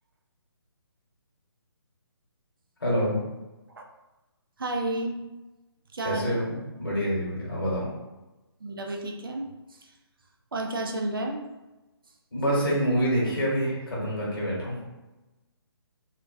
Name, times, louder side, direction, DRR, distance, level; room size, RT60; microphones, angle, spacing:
voice 1, 2.8-3.2 6.0-7.9 12.3-14.8, equal, 55° left, -5 dB, 1.1 m, -26 dB
voice 2, 4.6-5.2 5.9-6.4 8.6-9.9 10.5-11.4, right 1 dB, 55° right, 2 dB, 0.4 m, -32 dB
2.3 x 2.2 x 2.5 m, 1.1 s
figure-of-eight pair, 140°, 14 cm